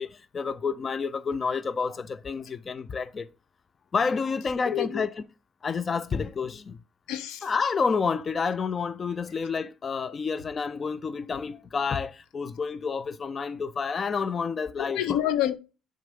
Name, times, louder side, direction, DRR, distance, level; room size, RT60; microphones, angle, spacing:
voice 1, 0.0-3.3 3.9-5.2 5.6-6.8 7.4-15.2, left 5 dB, 40° left, 0.5 m, -29 dB
voice 2, 4.7-5.1 7.1-7.5 14.8-15.5, left 11 dB, 75° left, 0.7 m, -28 dB
7.3 x 3.7 x 5.3 m
supercardioid pair, 75°, 0 cm